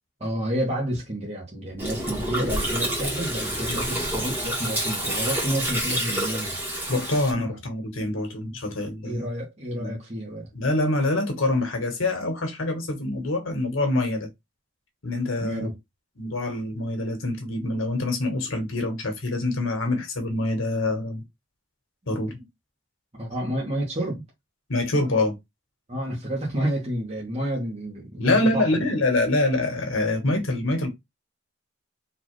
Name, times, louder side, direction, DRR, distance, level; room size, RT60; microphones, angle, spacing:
voice 1, 0.2-6.6 7.4-7.6 9.0-10.5 15.4-15.7 23.1-24.2 25.9-28.8, equal, 30° right, 1.3 m, -30 dB
Gurgling, 1.8-7.3, right 1 dB, 10° right, 1.5 m, -28 dB
voice 2, 6.9-9.3 9.8-10.0 10.5-14.3 15.0-15.7 16.2-21.2 22.1-22.3 24.7-25.4 28.2-30.9, left 2 dB, 80° left, 1.4 m, -25 dB
4.1 x 2.9 x 3.1 m
head